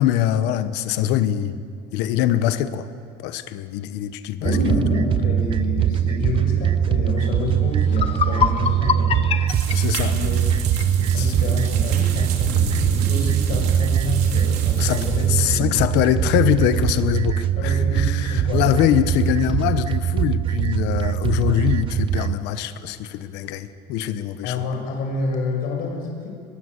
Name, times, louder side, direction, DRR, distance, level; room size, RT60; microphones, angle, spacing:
voice 1, 0.0-1.6 1.9-2.9 3.2-4.6 9.7-10.1 11.1-11.3 14.8-24.6, left 12 dB, 85° left, 12 dB, 1.2 m, -23 dB
voice 2, 4.4-9.7 10.1-10.4 10.9-15.8 17.6-18.7 21.4-21.6 24.4-26.3, left 3 dB, 60° left, 2 dB, 6.5 m, -28 dB
sound 1, 4.4-22.4, right 10 dB, 30° right, 0.5 m, -22 dB
sound 2, 7.4-7.5 7.8-10.9, left 7 dB, 35° left, 1.0 m, -25 dB
sound 3, 9.5-15.5, right 5 dB, 75° right, 3.4 m, -29 dB
24.0 x 21.0 x 8.3 m, 2.3 s
cardioid pair, 170°, 17 cm